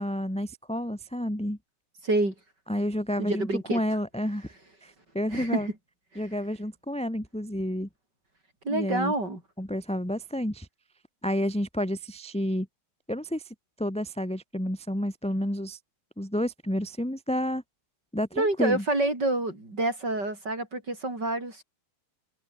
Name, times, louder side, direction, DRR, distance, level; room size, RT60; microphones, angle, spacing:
voice 1, 0.0-1.6 2.7-4.5 4.8-5.7 6.1-7.9 8.7-9.1 9.6-10.7 11.2-12.7 13.1-15.8 16.2-17.6 18.1-18.8, equal, ahead, 2.9 m, -30 dB
voice 2, 2.0-2.3 3.2-3.8 5.3-5.7 6.1-6.3 8.6-9.4 18.3-21.6, right 2 dB, 25° right, 6.0 m, -27 dB
omnidirectional pair, 4.9 m